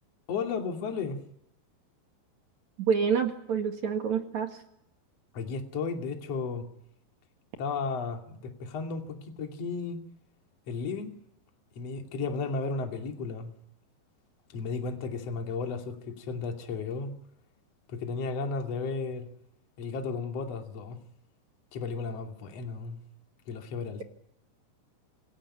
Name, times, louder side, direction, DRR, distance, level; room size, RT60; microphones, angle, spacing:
voice 1, 0.3-1.2 5.3-6.7 7.6-10.0 10.7-11.1 11.7-13.5 14.5-17.1 17.9-19.3 19.8-21.0 21.7-23.0 23.5-24.0, left 4 dB, 40° left, 3.2 m, -34 dB
voice 2, 2.8-4.5, right 6 dB, 50° right, 2.7 m, -27 dB
27.5 x 17.5 x 10.0 m
omnidirectional pair, 5.1 m